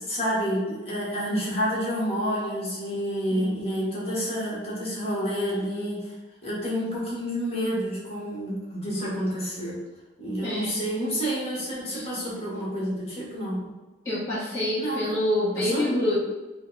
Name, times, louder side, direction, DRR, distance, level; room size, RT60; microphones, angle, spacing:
voice 1, 0.0-6.1 6.4-9.8 10.2-13.6 14.8-15.2 15.6-15.8, equal, 35° left, -6 dB, 1.3 m, -29 dB
voice 2, 3.3-3.8 10.4-10.8 11.9-12.1 14.0-16.2, left 1 dB, 15° left, -11 dB, 1.1 m, -27 dB
5.1 x 2.2 x 4.0 m, 1.1 s
head